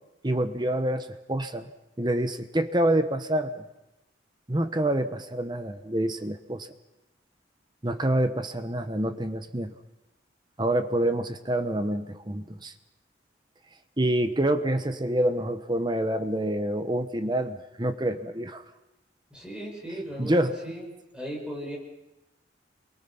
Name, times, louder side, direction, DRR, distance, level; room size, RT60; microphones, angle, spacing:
voice 1, 0.2-1.7 2.0-3.7 4.5-6.7 7.8-9.7 10.6-12.7 14.0-18.6 20.2-20.6, right 1 dB, 25° right, 9 dB, 1.1 m, -27 dB
voice 2, 19.3-20.9 21.1-21.8, equal, 5° right, -2 dB, 6.0 m, -37 dB
29.5 x 23.5 x 5.7 m, 0.95 s
head